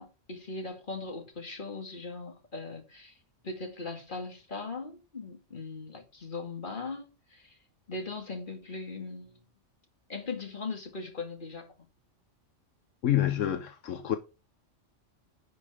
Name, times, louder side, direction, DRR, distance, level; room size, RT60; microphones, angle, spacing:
voice 1, 0.0-3.2 3.4-7.5 7.9-9.4 10.1-11.7, left 3 dB, 40° left, 2.5 m, -39 dB
voice 2, 13.0-14.2, left 11 dB, 80° left, 1.2 m, -27 dB
10.5 x 5.8 x 4.9 m
omnidirectional pair, 1.3 m